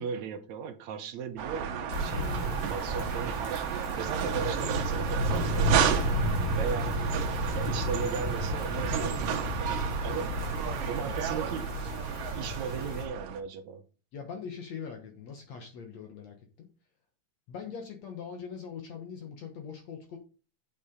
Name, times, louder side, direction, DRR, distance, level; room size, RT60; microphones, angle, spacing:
voice 1, 0.0-6.0 6.5-7.1 7.5-9.2 9.6-10.4 10.9-11.8 12.3-13.8, right 6 dB, 65° right, 2.2 m, -37 dB
sound 1, 1.4-13.4, right 8 dB, 80° right, 2.8 m, -32 dB
sound 2, 1.9-13.1, equal, 85° left, 4.9 m, -32 dB
voice 2, 14.1-16.7 17.5-20.2, left 6 dB, 60° left, 2.3 m, -42 dB
7.5 x 7.4 x 5.3 m
omnidirectional pair, 3.8 m